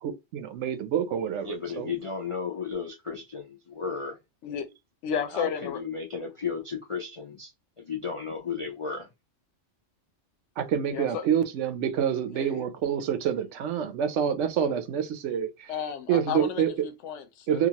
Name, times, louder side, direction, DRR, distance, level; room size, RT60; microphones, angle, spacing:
voice 1, 0.0-1.9 10.6-15.7 16.1-16.7 17.5-17.7, right 8 dB, 80° right, 0.9 m, -27 dB
voice 2, 1.4-4.2 5.1-7.5 7.8-9.1, left 5 dB, 60° left, 0.3 m, -34 dB
voice 3, 5.0-5.8 10.9-11.3 12.3-12.6 15.7-17.7, left 7 dB, 80° left, 0.9 m, -33 dB
2.8 x 2.4 x 2.8 m
omnidirectional pair, 1.2 m